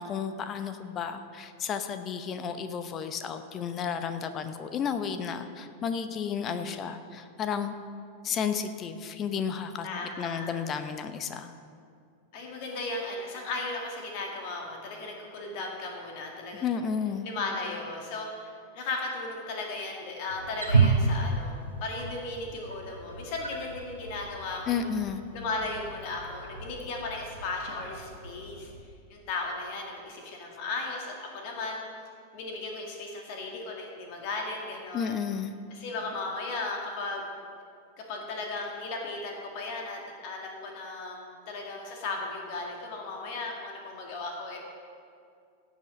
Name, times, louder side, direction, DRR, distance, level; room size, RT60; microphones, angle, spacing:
voice 1, 0.0-7.8 8.2-9.9 10.2-11.5 16.6-17.3 24.7-25.2 34.9-35.5, left 7 dB, 30° left, 9 dB, 0.7 m, -32 dB
voice 2, 9.8-10.5 12.3-16.7 17.2-21.5 21.8-24.9 25.3-28.7 29.1-31.8 32.3-35.1 35.7-37.2 38.0-44.6, left 3 dB, 45° left, 0 dB, 2.0 m, -36 dB
Wild animals, 20.3-28.8, right 4 dB, 80° right, 1.1 m, -31 dB
16.5 x 7.2 x 5.2 m, 2.3 s
figure-of-eight pair, 90°, 0 cm